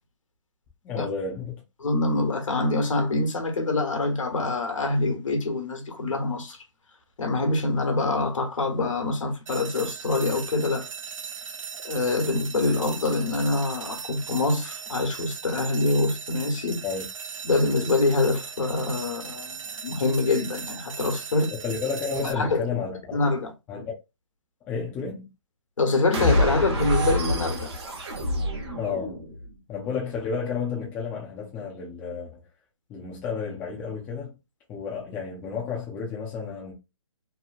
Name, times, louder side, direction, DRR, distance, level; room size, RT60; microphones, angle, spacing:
voice 1, 0.8-1.6 16.8-17.1 21.6-23.2 23.7-23.9 24.6-25.3 28.8-29.2 29.7-32.4 32.9-34.3 34.7-36.7, left 5 dB, 10° left, 0.4 m, -31 dB
voice 2, 1.8-6.6 7.2-10.9 11.8-16.8 17.4-21.5 22.2-22.6 23.1-23.5 25.8-27.8, left 3 dB, 75° left, 1.1 m, -25 dB
sound 1, 9.5-22.3, right 6 dB, 85° right, 0.5 m, -38 dB
sound 2, 26.1-29.5, equal, 55° right, 1.0 m, -26 dB
2.9 x 2.2 x 2.4 m
hypercardioid pair, 155°, 16 cm